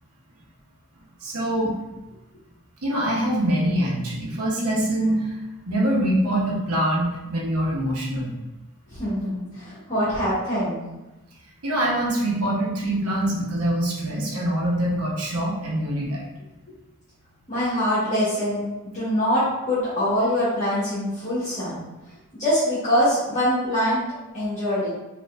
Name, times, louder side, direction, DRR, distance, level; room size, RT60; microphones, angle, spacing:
voice 1, 1.2-1.7 2.8-5.4 5.7-8.3 11.6-16.2, right 1 dB, 85° right, -3 dB, 1.0 m, -24 dB
voice 2, 8.9-10.8 17.5-21.8 22.4-24.0 24.3-24.9, equal, 30° left, -12 dB, 1.3 m, -24 dB
5.1 x 2.8 x 2.5 m, 1.0 s
head